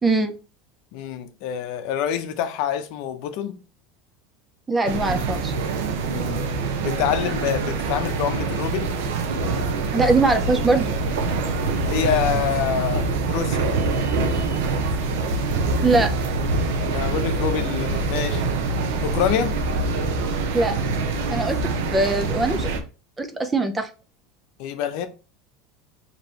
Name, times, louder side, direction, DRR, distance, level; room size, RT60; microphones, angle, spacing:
voice 1, 0.0-0.3 4.7-5.5 9.9-10.9 15.8-16.1 20.5-20.8 21.3-22.7 23.2-23.9, right 3 dB, 15° right, 0.5 m, -21 dB
voice 2, 0.9-3.6 6.1-6.5 6.8-8.9 11.8-13.7 16.8-18.4 19.0-19.6 24.6-25.1, left 9 dB, 60° left, 0.7 m, -26 dB
sound 1, 4.8-22.8, right 3 dB, 85° right, 0.8 m, -25 dB
5.2 x 2.9 x 2.9 m
supercardioid pair, 145°, 0 cm